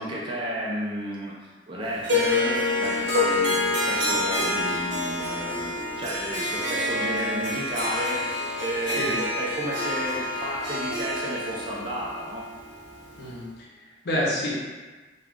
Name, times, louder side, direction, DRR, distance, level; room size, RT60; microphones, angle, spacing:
voice 1, 0.0-12.4, right 1 dB, 30° right, -5 dB, 0.5 m, -32 dB
Harp, 2.0-13.3, left 2 dB, 80° right, 0.8 m, -27 dB
voice 2, 13.2-14.5, left 1 dB, 65° left, -5 dB, 0.8 m, -29 dB
2.4 x 2.3 x 3.5 m, 1.3 s
head